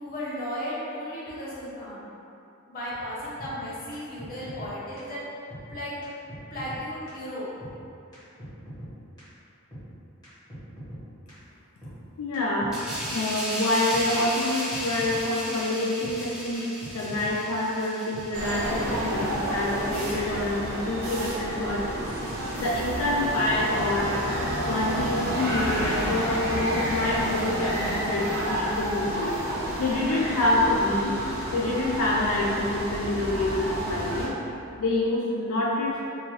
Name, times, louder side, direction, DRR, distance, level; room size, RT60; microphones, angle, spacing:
voice 1, 0.0-2.1 2.7-5.2 5.7-6.0 6.5-7.5, equal, 45° left, -8 dB, 0.7 m, -35 dB
sound 1, 3.4-3.5 3.9-4.7 5.0-5.1 5.5-5.6 6.0-6.1 6.3-6.8 7.1-7.2 7.6-7.7 8.1-8.2 8.4-8.9 9.2-9.3 9.7-9.8 10.2-11.0 11.3-11.4 11.8-11.9 12.3-12.4 12.6-13.1 13.4-13.5 13.9-14.0 14.4-14.5 14.7-15.2 15.5-15.6 16.0-16.1 16.6-16.7 16.8-17.3 17.6-17.7 18.1-18.3 18.7-18.8 18.9-19.4 19.7-19.8, equal, 20° left, 1.1 m, -41 dB
voice 2, 12.2-12.8 13.1-16.7 16.9-21.9 22.6-24.2 24.6-29.3 29.8-31.1 31.5-34.3 34.8-36.0, left 1 dB, 80° left, -5 dB, 0.4 m, -27 dB
sound 2, 12.7-19.9 20.2-20.5, equal, 5° right, 0.5 m, -35 dB
sound 3, 18.3-34.3, equal, 50° right, 0.6 m, -30 dB
2.7 x 2.3 x 3.1 m, 2.7 s
head